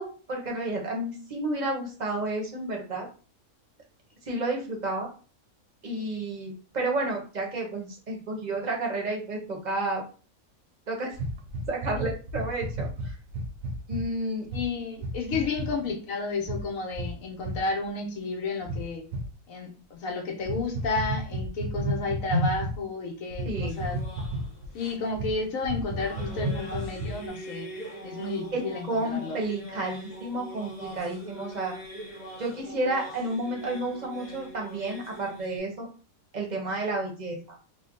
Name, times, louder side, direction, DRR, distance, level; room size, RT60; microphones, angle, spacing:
voice 1, 0.0-3.1 4.3-5.1 5.8-10.0 10.9-11.1 11.7-12.9 13.9-14.5 15.3-15.4 23.4-23.8 28.5-31.7 32.4-35.9 36.3-37.4, right 2 dB, 35° right, 0 dB, 0.9 m, -31 dB
sound 1, 11.1-14.0 14.5-14.7 15.0-15.7 16.4-16.6 16.9-17.1 17.4-17.6 18.6-19.3 20.4-22.8 23.3-24.7 25.1-25.3 25.6-27.3, right 1 dB, 70° right, 1.0 m, -31 dB
voice 2, 14.5-19.0 19.5-24.0 24.7-27.7 28.0-29.4, left 3 dB, 70° left, 2 dB, 1.2 m, -32 dB
sound 2, 23.7-35.6, equal, 35° left, 0.8 m, -43 dB
3.3 x 2.1 x 3.7 m, 0.37 s
omnidirectional pair, 1.5 m